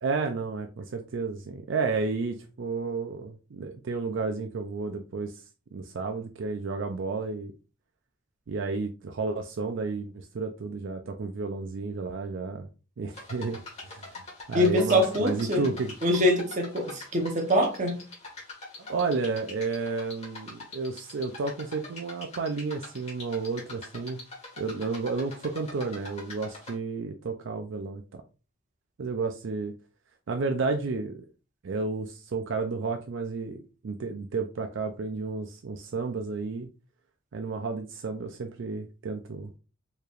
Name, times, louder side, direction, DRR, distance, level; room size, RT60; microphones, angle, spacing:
voice 1, 0.0-5.4 5.7-7.5 8.5-12.7 13.0-15.9 18.9-24.2 24.6-28.2 29.0-29.7 30.3-31.2 31.6-36.7 37.3-39.5, right 4 dB, 65° right, 0.4 m, -32 dB
sound 1, 13.1-26.7, left 3 dB, 35° left, 1.5 m, -44 dB
voice 2, 14.5-15.7 16.0-18.0, left 1 dB, 40° right, 0.9 m, -24 dB
4.6 x 3.3 x 2.4 m
head